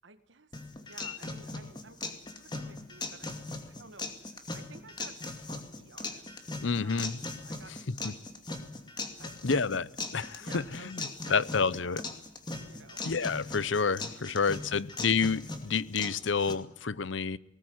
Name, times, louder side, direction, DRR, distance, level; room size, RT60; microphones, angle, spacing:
voice 1, 0.0-7.1 7.4-8.4 9.2-9.5 10.4-11.4 11.7-12.0 12.7-13.0, right 3 dB, 75° right, 1.7 m, -54 dB
sound 1, 0.5-16.5, left 3 dB, 25° left, 2.5 m, -40 dB
voice 2, 6.6-7.2 7.9-8.1 9.4-12.0 13.0-17.4, left 5 dB, 80° left, 0.8 m, -29 dB
19.5 x 19.0 x 9.4 m
head